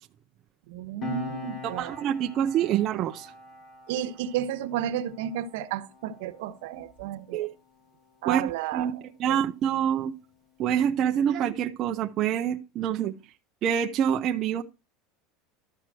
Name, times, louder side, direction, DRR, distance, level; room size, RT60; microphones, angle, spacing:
voice 1, 0.7-2.0 3.9-7.5 8.2-9.4, right 10 dB, 70° right, 1.2 m, -32 dB
Piano, 1.0-8.0 8.3-8.5, left 4 dB, 20° left, 2.1 m, -43 dB
voice 2, 1.6-3.3 7.3-7.5 8.3-8.4 8.7-10.1 10.6-13.1 13.6-14.6, right 9 dB, 30° right, 0.7 m, -26 dB
13.0 x 4.5 x 7.5 m
cardioid pair, 175°, 0 cm